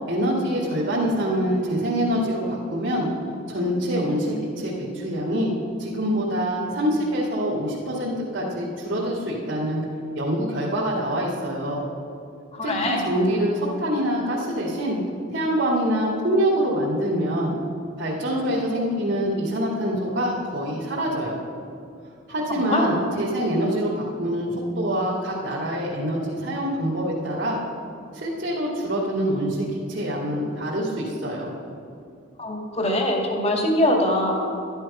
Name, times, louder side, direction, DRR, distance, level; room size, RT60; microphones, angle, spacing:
voice 1, 0.1-3.1 3.5-5.5 5.8-9.8 10.1-11.8 12.6-15.0 15.3-17.5 18.0-21.4 22.3-27.6 28.1-31.5, equal, 60° right, -5 dB, 2.2 m, -25 dB
voice 2, 12.5-13.1 22.5-22.9 32.4-34.4, left 1 dB, 30° left, 1 dB, 1.9 m, -23 dB
12.5 x 11.0 x 5.5 m, 2.5 s
head